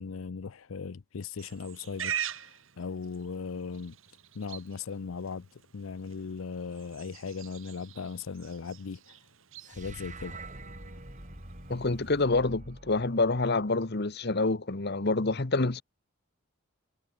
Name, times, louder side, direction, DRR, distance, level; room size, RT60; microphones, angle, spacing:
voice 1, 0.0-3.9 4.3-9.2 9.7-10.4, left 5 dB, 75° left, 0.6 m, -38 dB
Livestock farm animals working animals, 1.4-12.2, right 9 dB, 70° right, 2.7 m, -43 dB
sound 1, 9.6-14.0, right 2 dB, 35° right, 6.0 m, -46 dB
voice 2, 11.7-15.8, left 3 dB, 50° left, 1.1 m, -27 dB
head